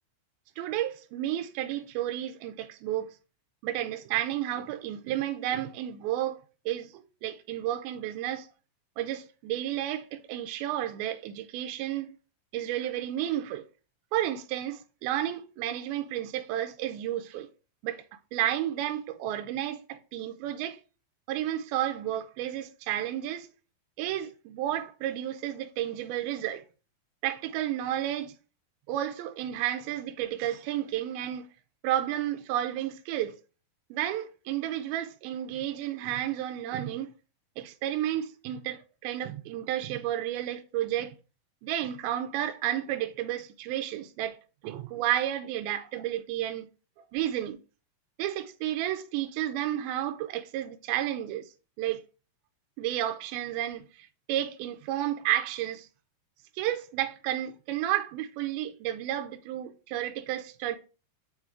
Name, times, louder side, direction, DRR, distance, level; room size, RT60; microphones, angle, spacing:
voice 1, 0.6-3.1 3.6-8.5 9.0-12.1 12.5-13.6 14.1-17.5 17.8-18.0 18.3-20.8 21.3-23.5 24.0-26.7 27.2-28.3 28.9-31.5 31.8-33.4 33.9-37.1 37.6-41.1 41.6-44.4 44.6-46.7 47.1-47.6 48.2-51.5 51.8-52.0 52.8-55.9 56.6-60.8, right 12 dB, 85° right, 2.3 m, -32 dB
6.3 x 3.6 x 4.3 m
omnidirectional pair, 4.3 m